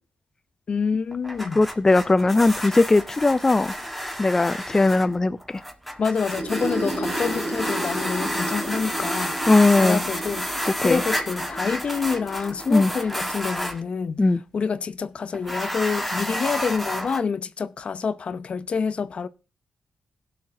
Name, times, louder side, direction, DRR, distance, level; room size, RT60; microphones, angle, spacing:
voice 1, 0.7-1.6 6.0-9.4 9.8-14.3 14.5-19.3, left 5 dB, 55° left, 0.7 m, -27 dB
sound 1, 1.1-13.8 15.3-17.2, equal, ahead, 1.7 m, -30 dB
voice 2, 1.6-3.7 4.2-5.6 9.5-10.0 10.8-11.0 12.7-12.9 14.2-14.4, left 2 dB, 25° left, 0.4 m, -19 dB
sound 2, 6.2-13.8, right 2 dB, 85° right, 3.3 m, -34 dB
16.5 x 5.9 x 3.7 m
cardioid pair, 70°, 2 cm